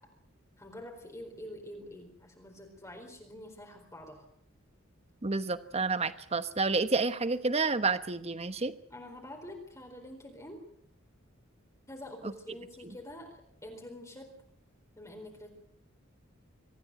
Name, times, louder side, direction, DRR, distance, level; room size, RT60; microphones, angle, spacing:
voice 1, 0.6-4.3 8.9-10.6 11.9-14.3 15.0-15.5, left 1 dB, 15° left, 2 dB, 4.4 m, -46 dB
voice 2, 5.2-8.7, right 3 dB, 30° right, 12 dB, 1.1 m, -29 dB
24.5 x 15.0 x 9.1 m, 0.67 s
head